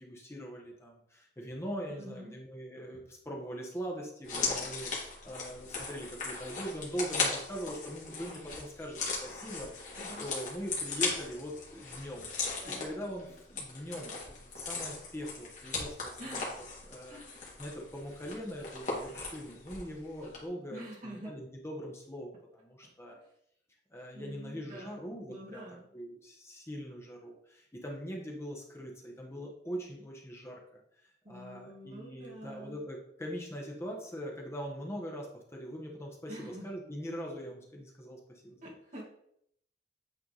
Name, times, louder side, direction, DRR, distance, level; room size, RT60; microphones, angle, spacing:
voice 1, 0.0-9.9 10.2-12.3 12.7-16.5 16.9-17.2 17.6-23.2 23.9-25.6 25.9-30.6 31.3-38.6, equal, 15° left, -1 dB, 1.1 m, -42 dB
voice 2, 1.9-2.4 9.9-10.3 12.6-12.8 16.2-16.5 17.1-17.3 20.7-21.3 23.1-23.3 24.1-25.0 25.3-25.9 31.2-32.8 36.3-36.6 38.6-39.0, right 1 dB, 45° right, -4 dB, 2.1 m, -47 dB
sound 1, 4.2-19.9 20.2-20.4, left 4 dB, 45° left, 2.1 m, -38 dB
8.9 x 3.6 x 4.0 m, 0.71 s
head